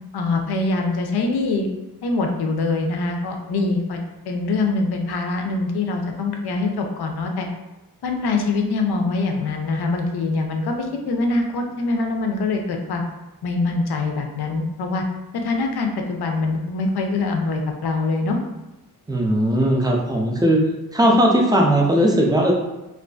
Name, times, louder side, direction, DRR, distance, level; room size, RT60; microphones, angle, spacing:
voice 1, 0.1-1.7 2.0-4.0 4.3-7.5 8.0-13.0 13.4-15.0 15.3-18.4, left 3 dB, 90° left, 3 dB, 0.5 m, -23 dB
voice 2, 19.1-20.6 20.9-22.5, right 1 dB, 10° right, -1 dB, 0.3 m, -18 dB
2.5 x 2.4 x 2.2 m, 0.98 s
wide cardioid pair, 135°, 37 cm